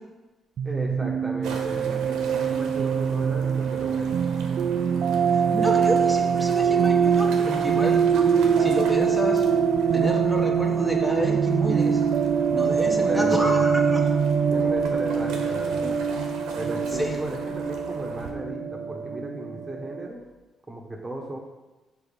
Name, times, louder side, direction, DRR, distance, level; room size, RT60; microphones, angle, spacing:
voice 1, 0.6-4.1 12.9-13.6 14.5-16.0 16.5-20.2 20.7-21.4, right 1 dB, 20° right, -1 dB, 1.2 m, -36 dB
sound 1, 0.6-20.1, right 6 dB, 65° right, 0.4 m, -23 dB
sound 2, 1.4-18.3, right 4 dB, 90° right, 1.0 m, -41 dB
voice 2, 5.3-8.1 8.5-9.4 9.9-12.0 12.5-14.1 16.9-17.2, equal, 10° left, 0 dB, 1.4 m, -29 dB
7.0 x 4.5 x 5.5 m, 1.1 s
cardioid pair, 90°, 0 cm